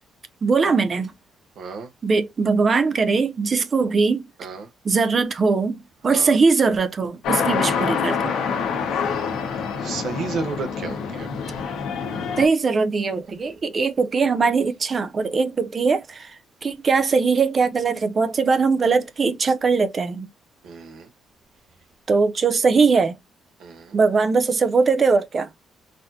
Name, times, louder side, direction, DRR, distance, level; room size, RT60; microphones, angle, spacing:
voice 1, 0.4-1.1 2.0-4.2 4.8-8.3 12.4-16.3 16.6-20.3 22.1-23.2 23.9-25.5, right 4 dB, 30° right, 0.4 m, -20 dB
voice 2, 1.6-1.9 4.4-4.7 6.1-6.4 9.8-11.3 20.6-21.1 23.6-24.0, right 4 dB, 65° right, 0.9 m, -32 dB
sound 1, 7.2-12.5, left 6 dB, 85° left, 1.1 m, -26 dB
4.1 x 2.7 x 2.6 m
cardioid pair, 150°, 0 cm